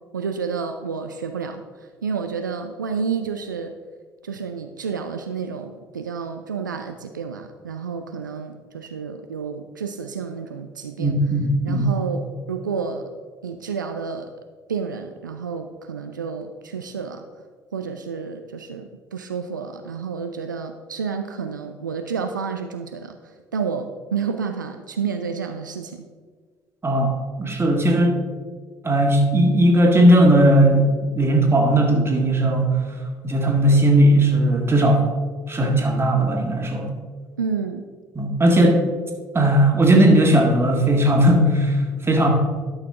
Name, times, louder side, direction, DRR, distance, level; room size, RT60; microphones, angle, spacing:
voice 1, 0.1-3.8 4.2-11.1 11.6-12.2 12.5-13.1 13.4-14.3 14.7-17.2 17.7-23.2 23.5-26.1 37.4-37.9, right 6 dB, 85° right, 6 dB, 0.4 m, -30 dB
voice 2, 11.0-11.9 26.8-27.1 27.4-28.2 28.8-32.8 33.2-35.1 35.5-36.9 38.2-38.8 39.3-42.3, right 1 dB, 25° right, 1 dB, 1.9 m, -17 dB
11.5 x 6.5 x 3.6 m, 1.6 s
figure-of-eight pair, 50°, 10 cm